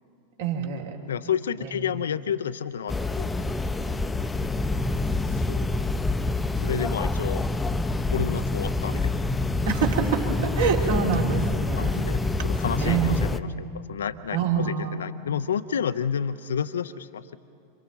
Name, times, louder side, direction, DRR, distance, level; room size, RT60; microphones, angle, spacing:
voice 1, 0.4-1.0 1.6-1.8 9.6-12.0 12.4-12.5 12.8-13.3 14.3-15.0, right 6 dB, 55° right, 1 dB, 2.6 m, -26 dB
voice 2, 1.1-3.4 5.3-5.8 6.6-7.5 8.1-9.3 11.8-12.2 12.4-17.4, left 8 dB, 65° left, 13 dB, 0.4 m, -30 dB
sound 1, 2.9-13.4, left 2 dB, 10° left, 0.6 m, -26 dB
27.5 x 26.0 x 4.0 m, 2.6 s
figure-of-eight pair, 90°, 0 cm